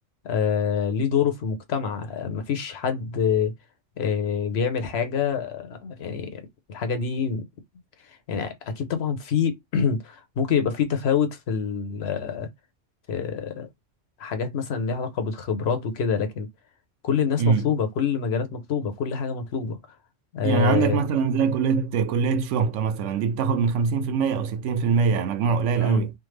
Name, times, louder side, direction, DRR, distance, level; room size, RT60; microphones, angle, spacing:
voice 1, 0.2-3.5 4.0-6.4 6.7-7.4 8.3-12.5 13.1-13.7 14.2-16.5 17.0-19.8 20.3-21.0 25.8-26.1, left 6 dB, 60° left, 1.0 m, -26 dB
voice 2, 17.4-17.7 20.4-26.1, right 5 dB, 80° right, 0.9 m, -23 dB
3.5 x 2.0 x 3.2 m
omnidirectional pair, 1.3 m